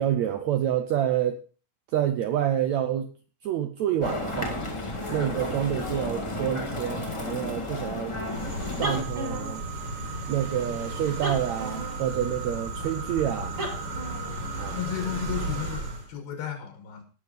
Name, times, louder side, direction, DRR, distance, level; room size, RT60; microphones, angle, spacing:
voice 1, 0.0-1.4 1.9-3.1 3.4-4.6 5.1-8.2 8.8-9.6 10.3-13.5 14.6-14.8, right 10 dB, 75° right, 7 dB, 1.7 m, -28 dB
sound 1, 4.0-9.0, left 2 dB, 30° left, 0.5 m, -32 dB
sound 2, 8.2-16.1, right 1 dB, 35° right, 3.3 m, -34 dB
sound 3, 8.9-15.6, right 29 dB, 55° right, 4.0 m, -42 dB
voice 2, 14.7-17.0, left 9 dB, 85° left, 5 dB, 3.9 m, -33 dB
17.5 x 6.3 x 5.1 m, 0.37 s
omnidirectional pair, 4.1 m